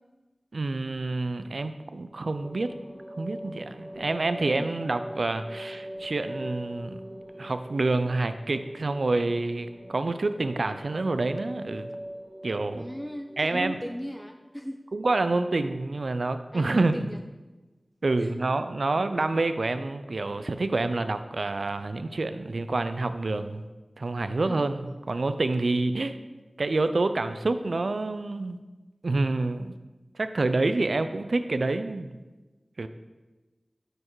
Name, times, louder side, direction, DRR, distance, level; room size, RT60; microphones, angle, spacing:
voice 1, 0.5-2.7 3.2-7.0 7.4-11.9 12.4-12.8 13.4-13.8 14.9-17.1 18.0-23.6 24.0-26.2 26.6-28.6 29.0-29.7 30.1-32.2 32.8-32.9, right 2 dB, 75° right, 10 dB, 0.3 m, -27 dB
sound 1, 2.3-14.5, equal, 35° right, 2.0 m, -42 dB
voice 2, 12.7-14.8 16.5-17.2 18.2-18.3 24.4-24.7, equal, ahead, 4 dB, 0.4 m, -37 dB
5.9 x 5.2 x 4.6 m, 1.2 s
wide cardioid pair, 50°, 0 cm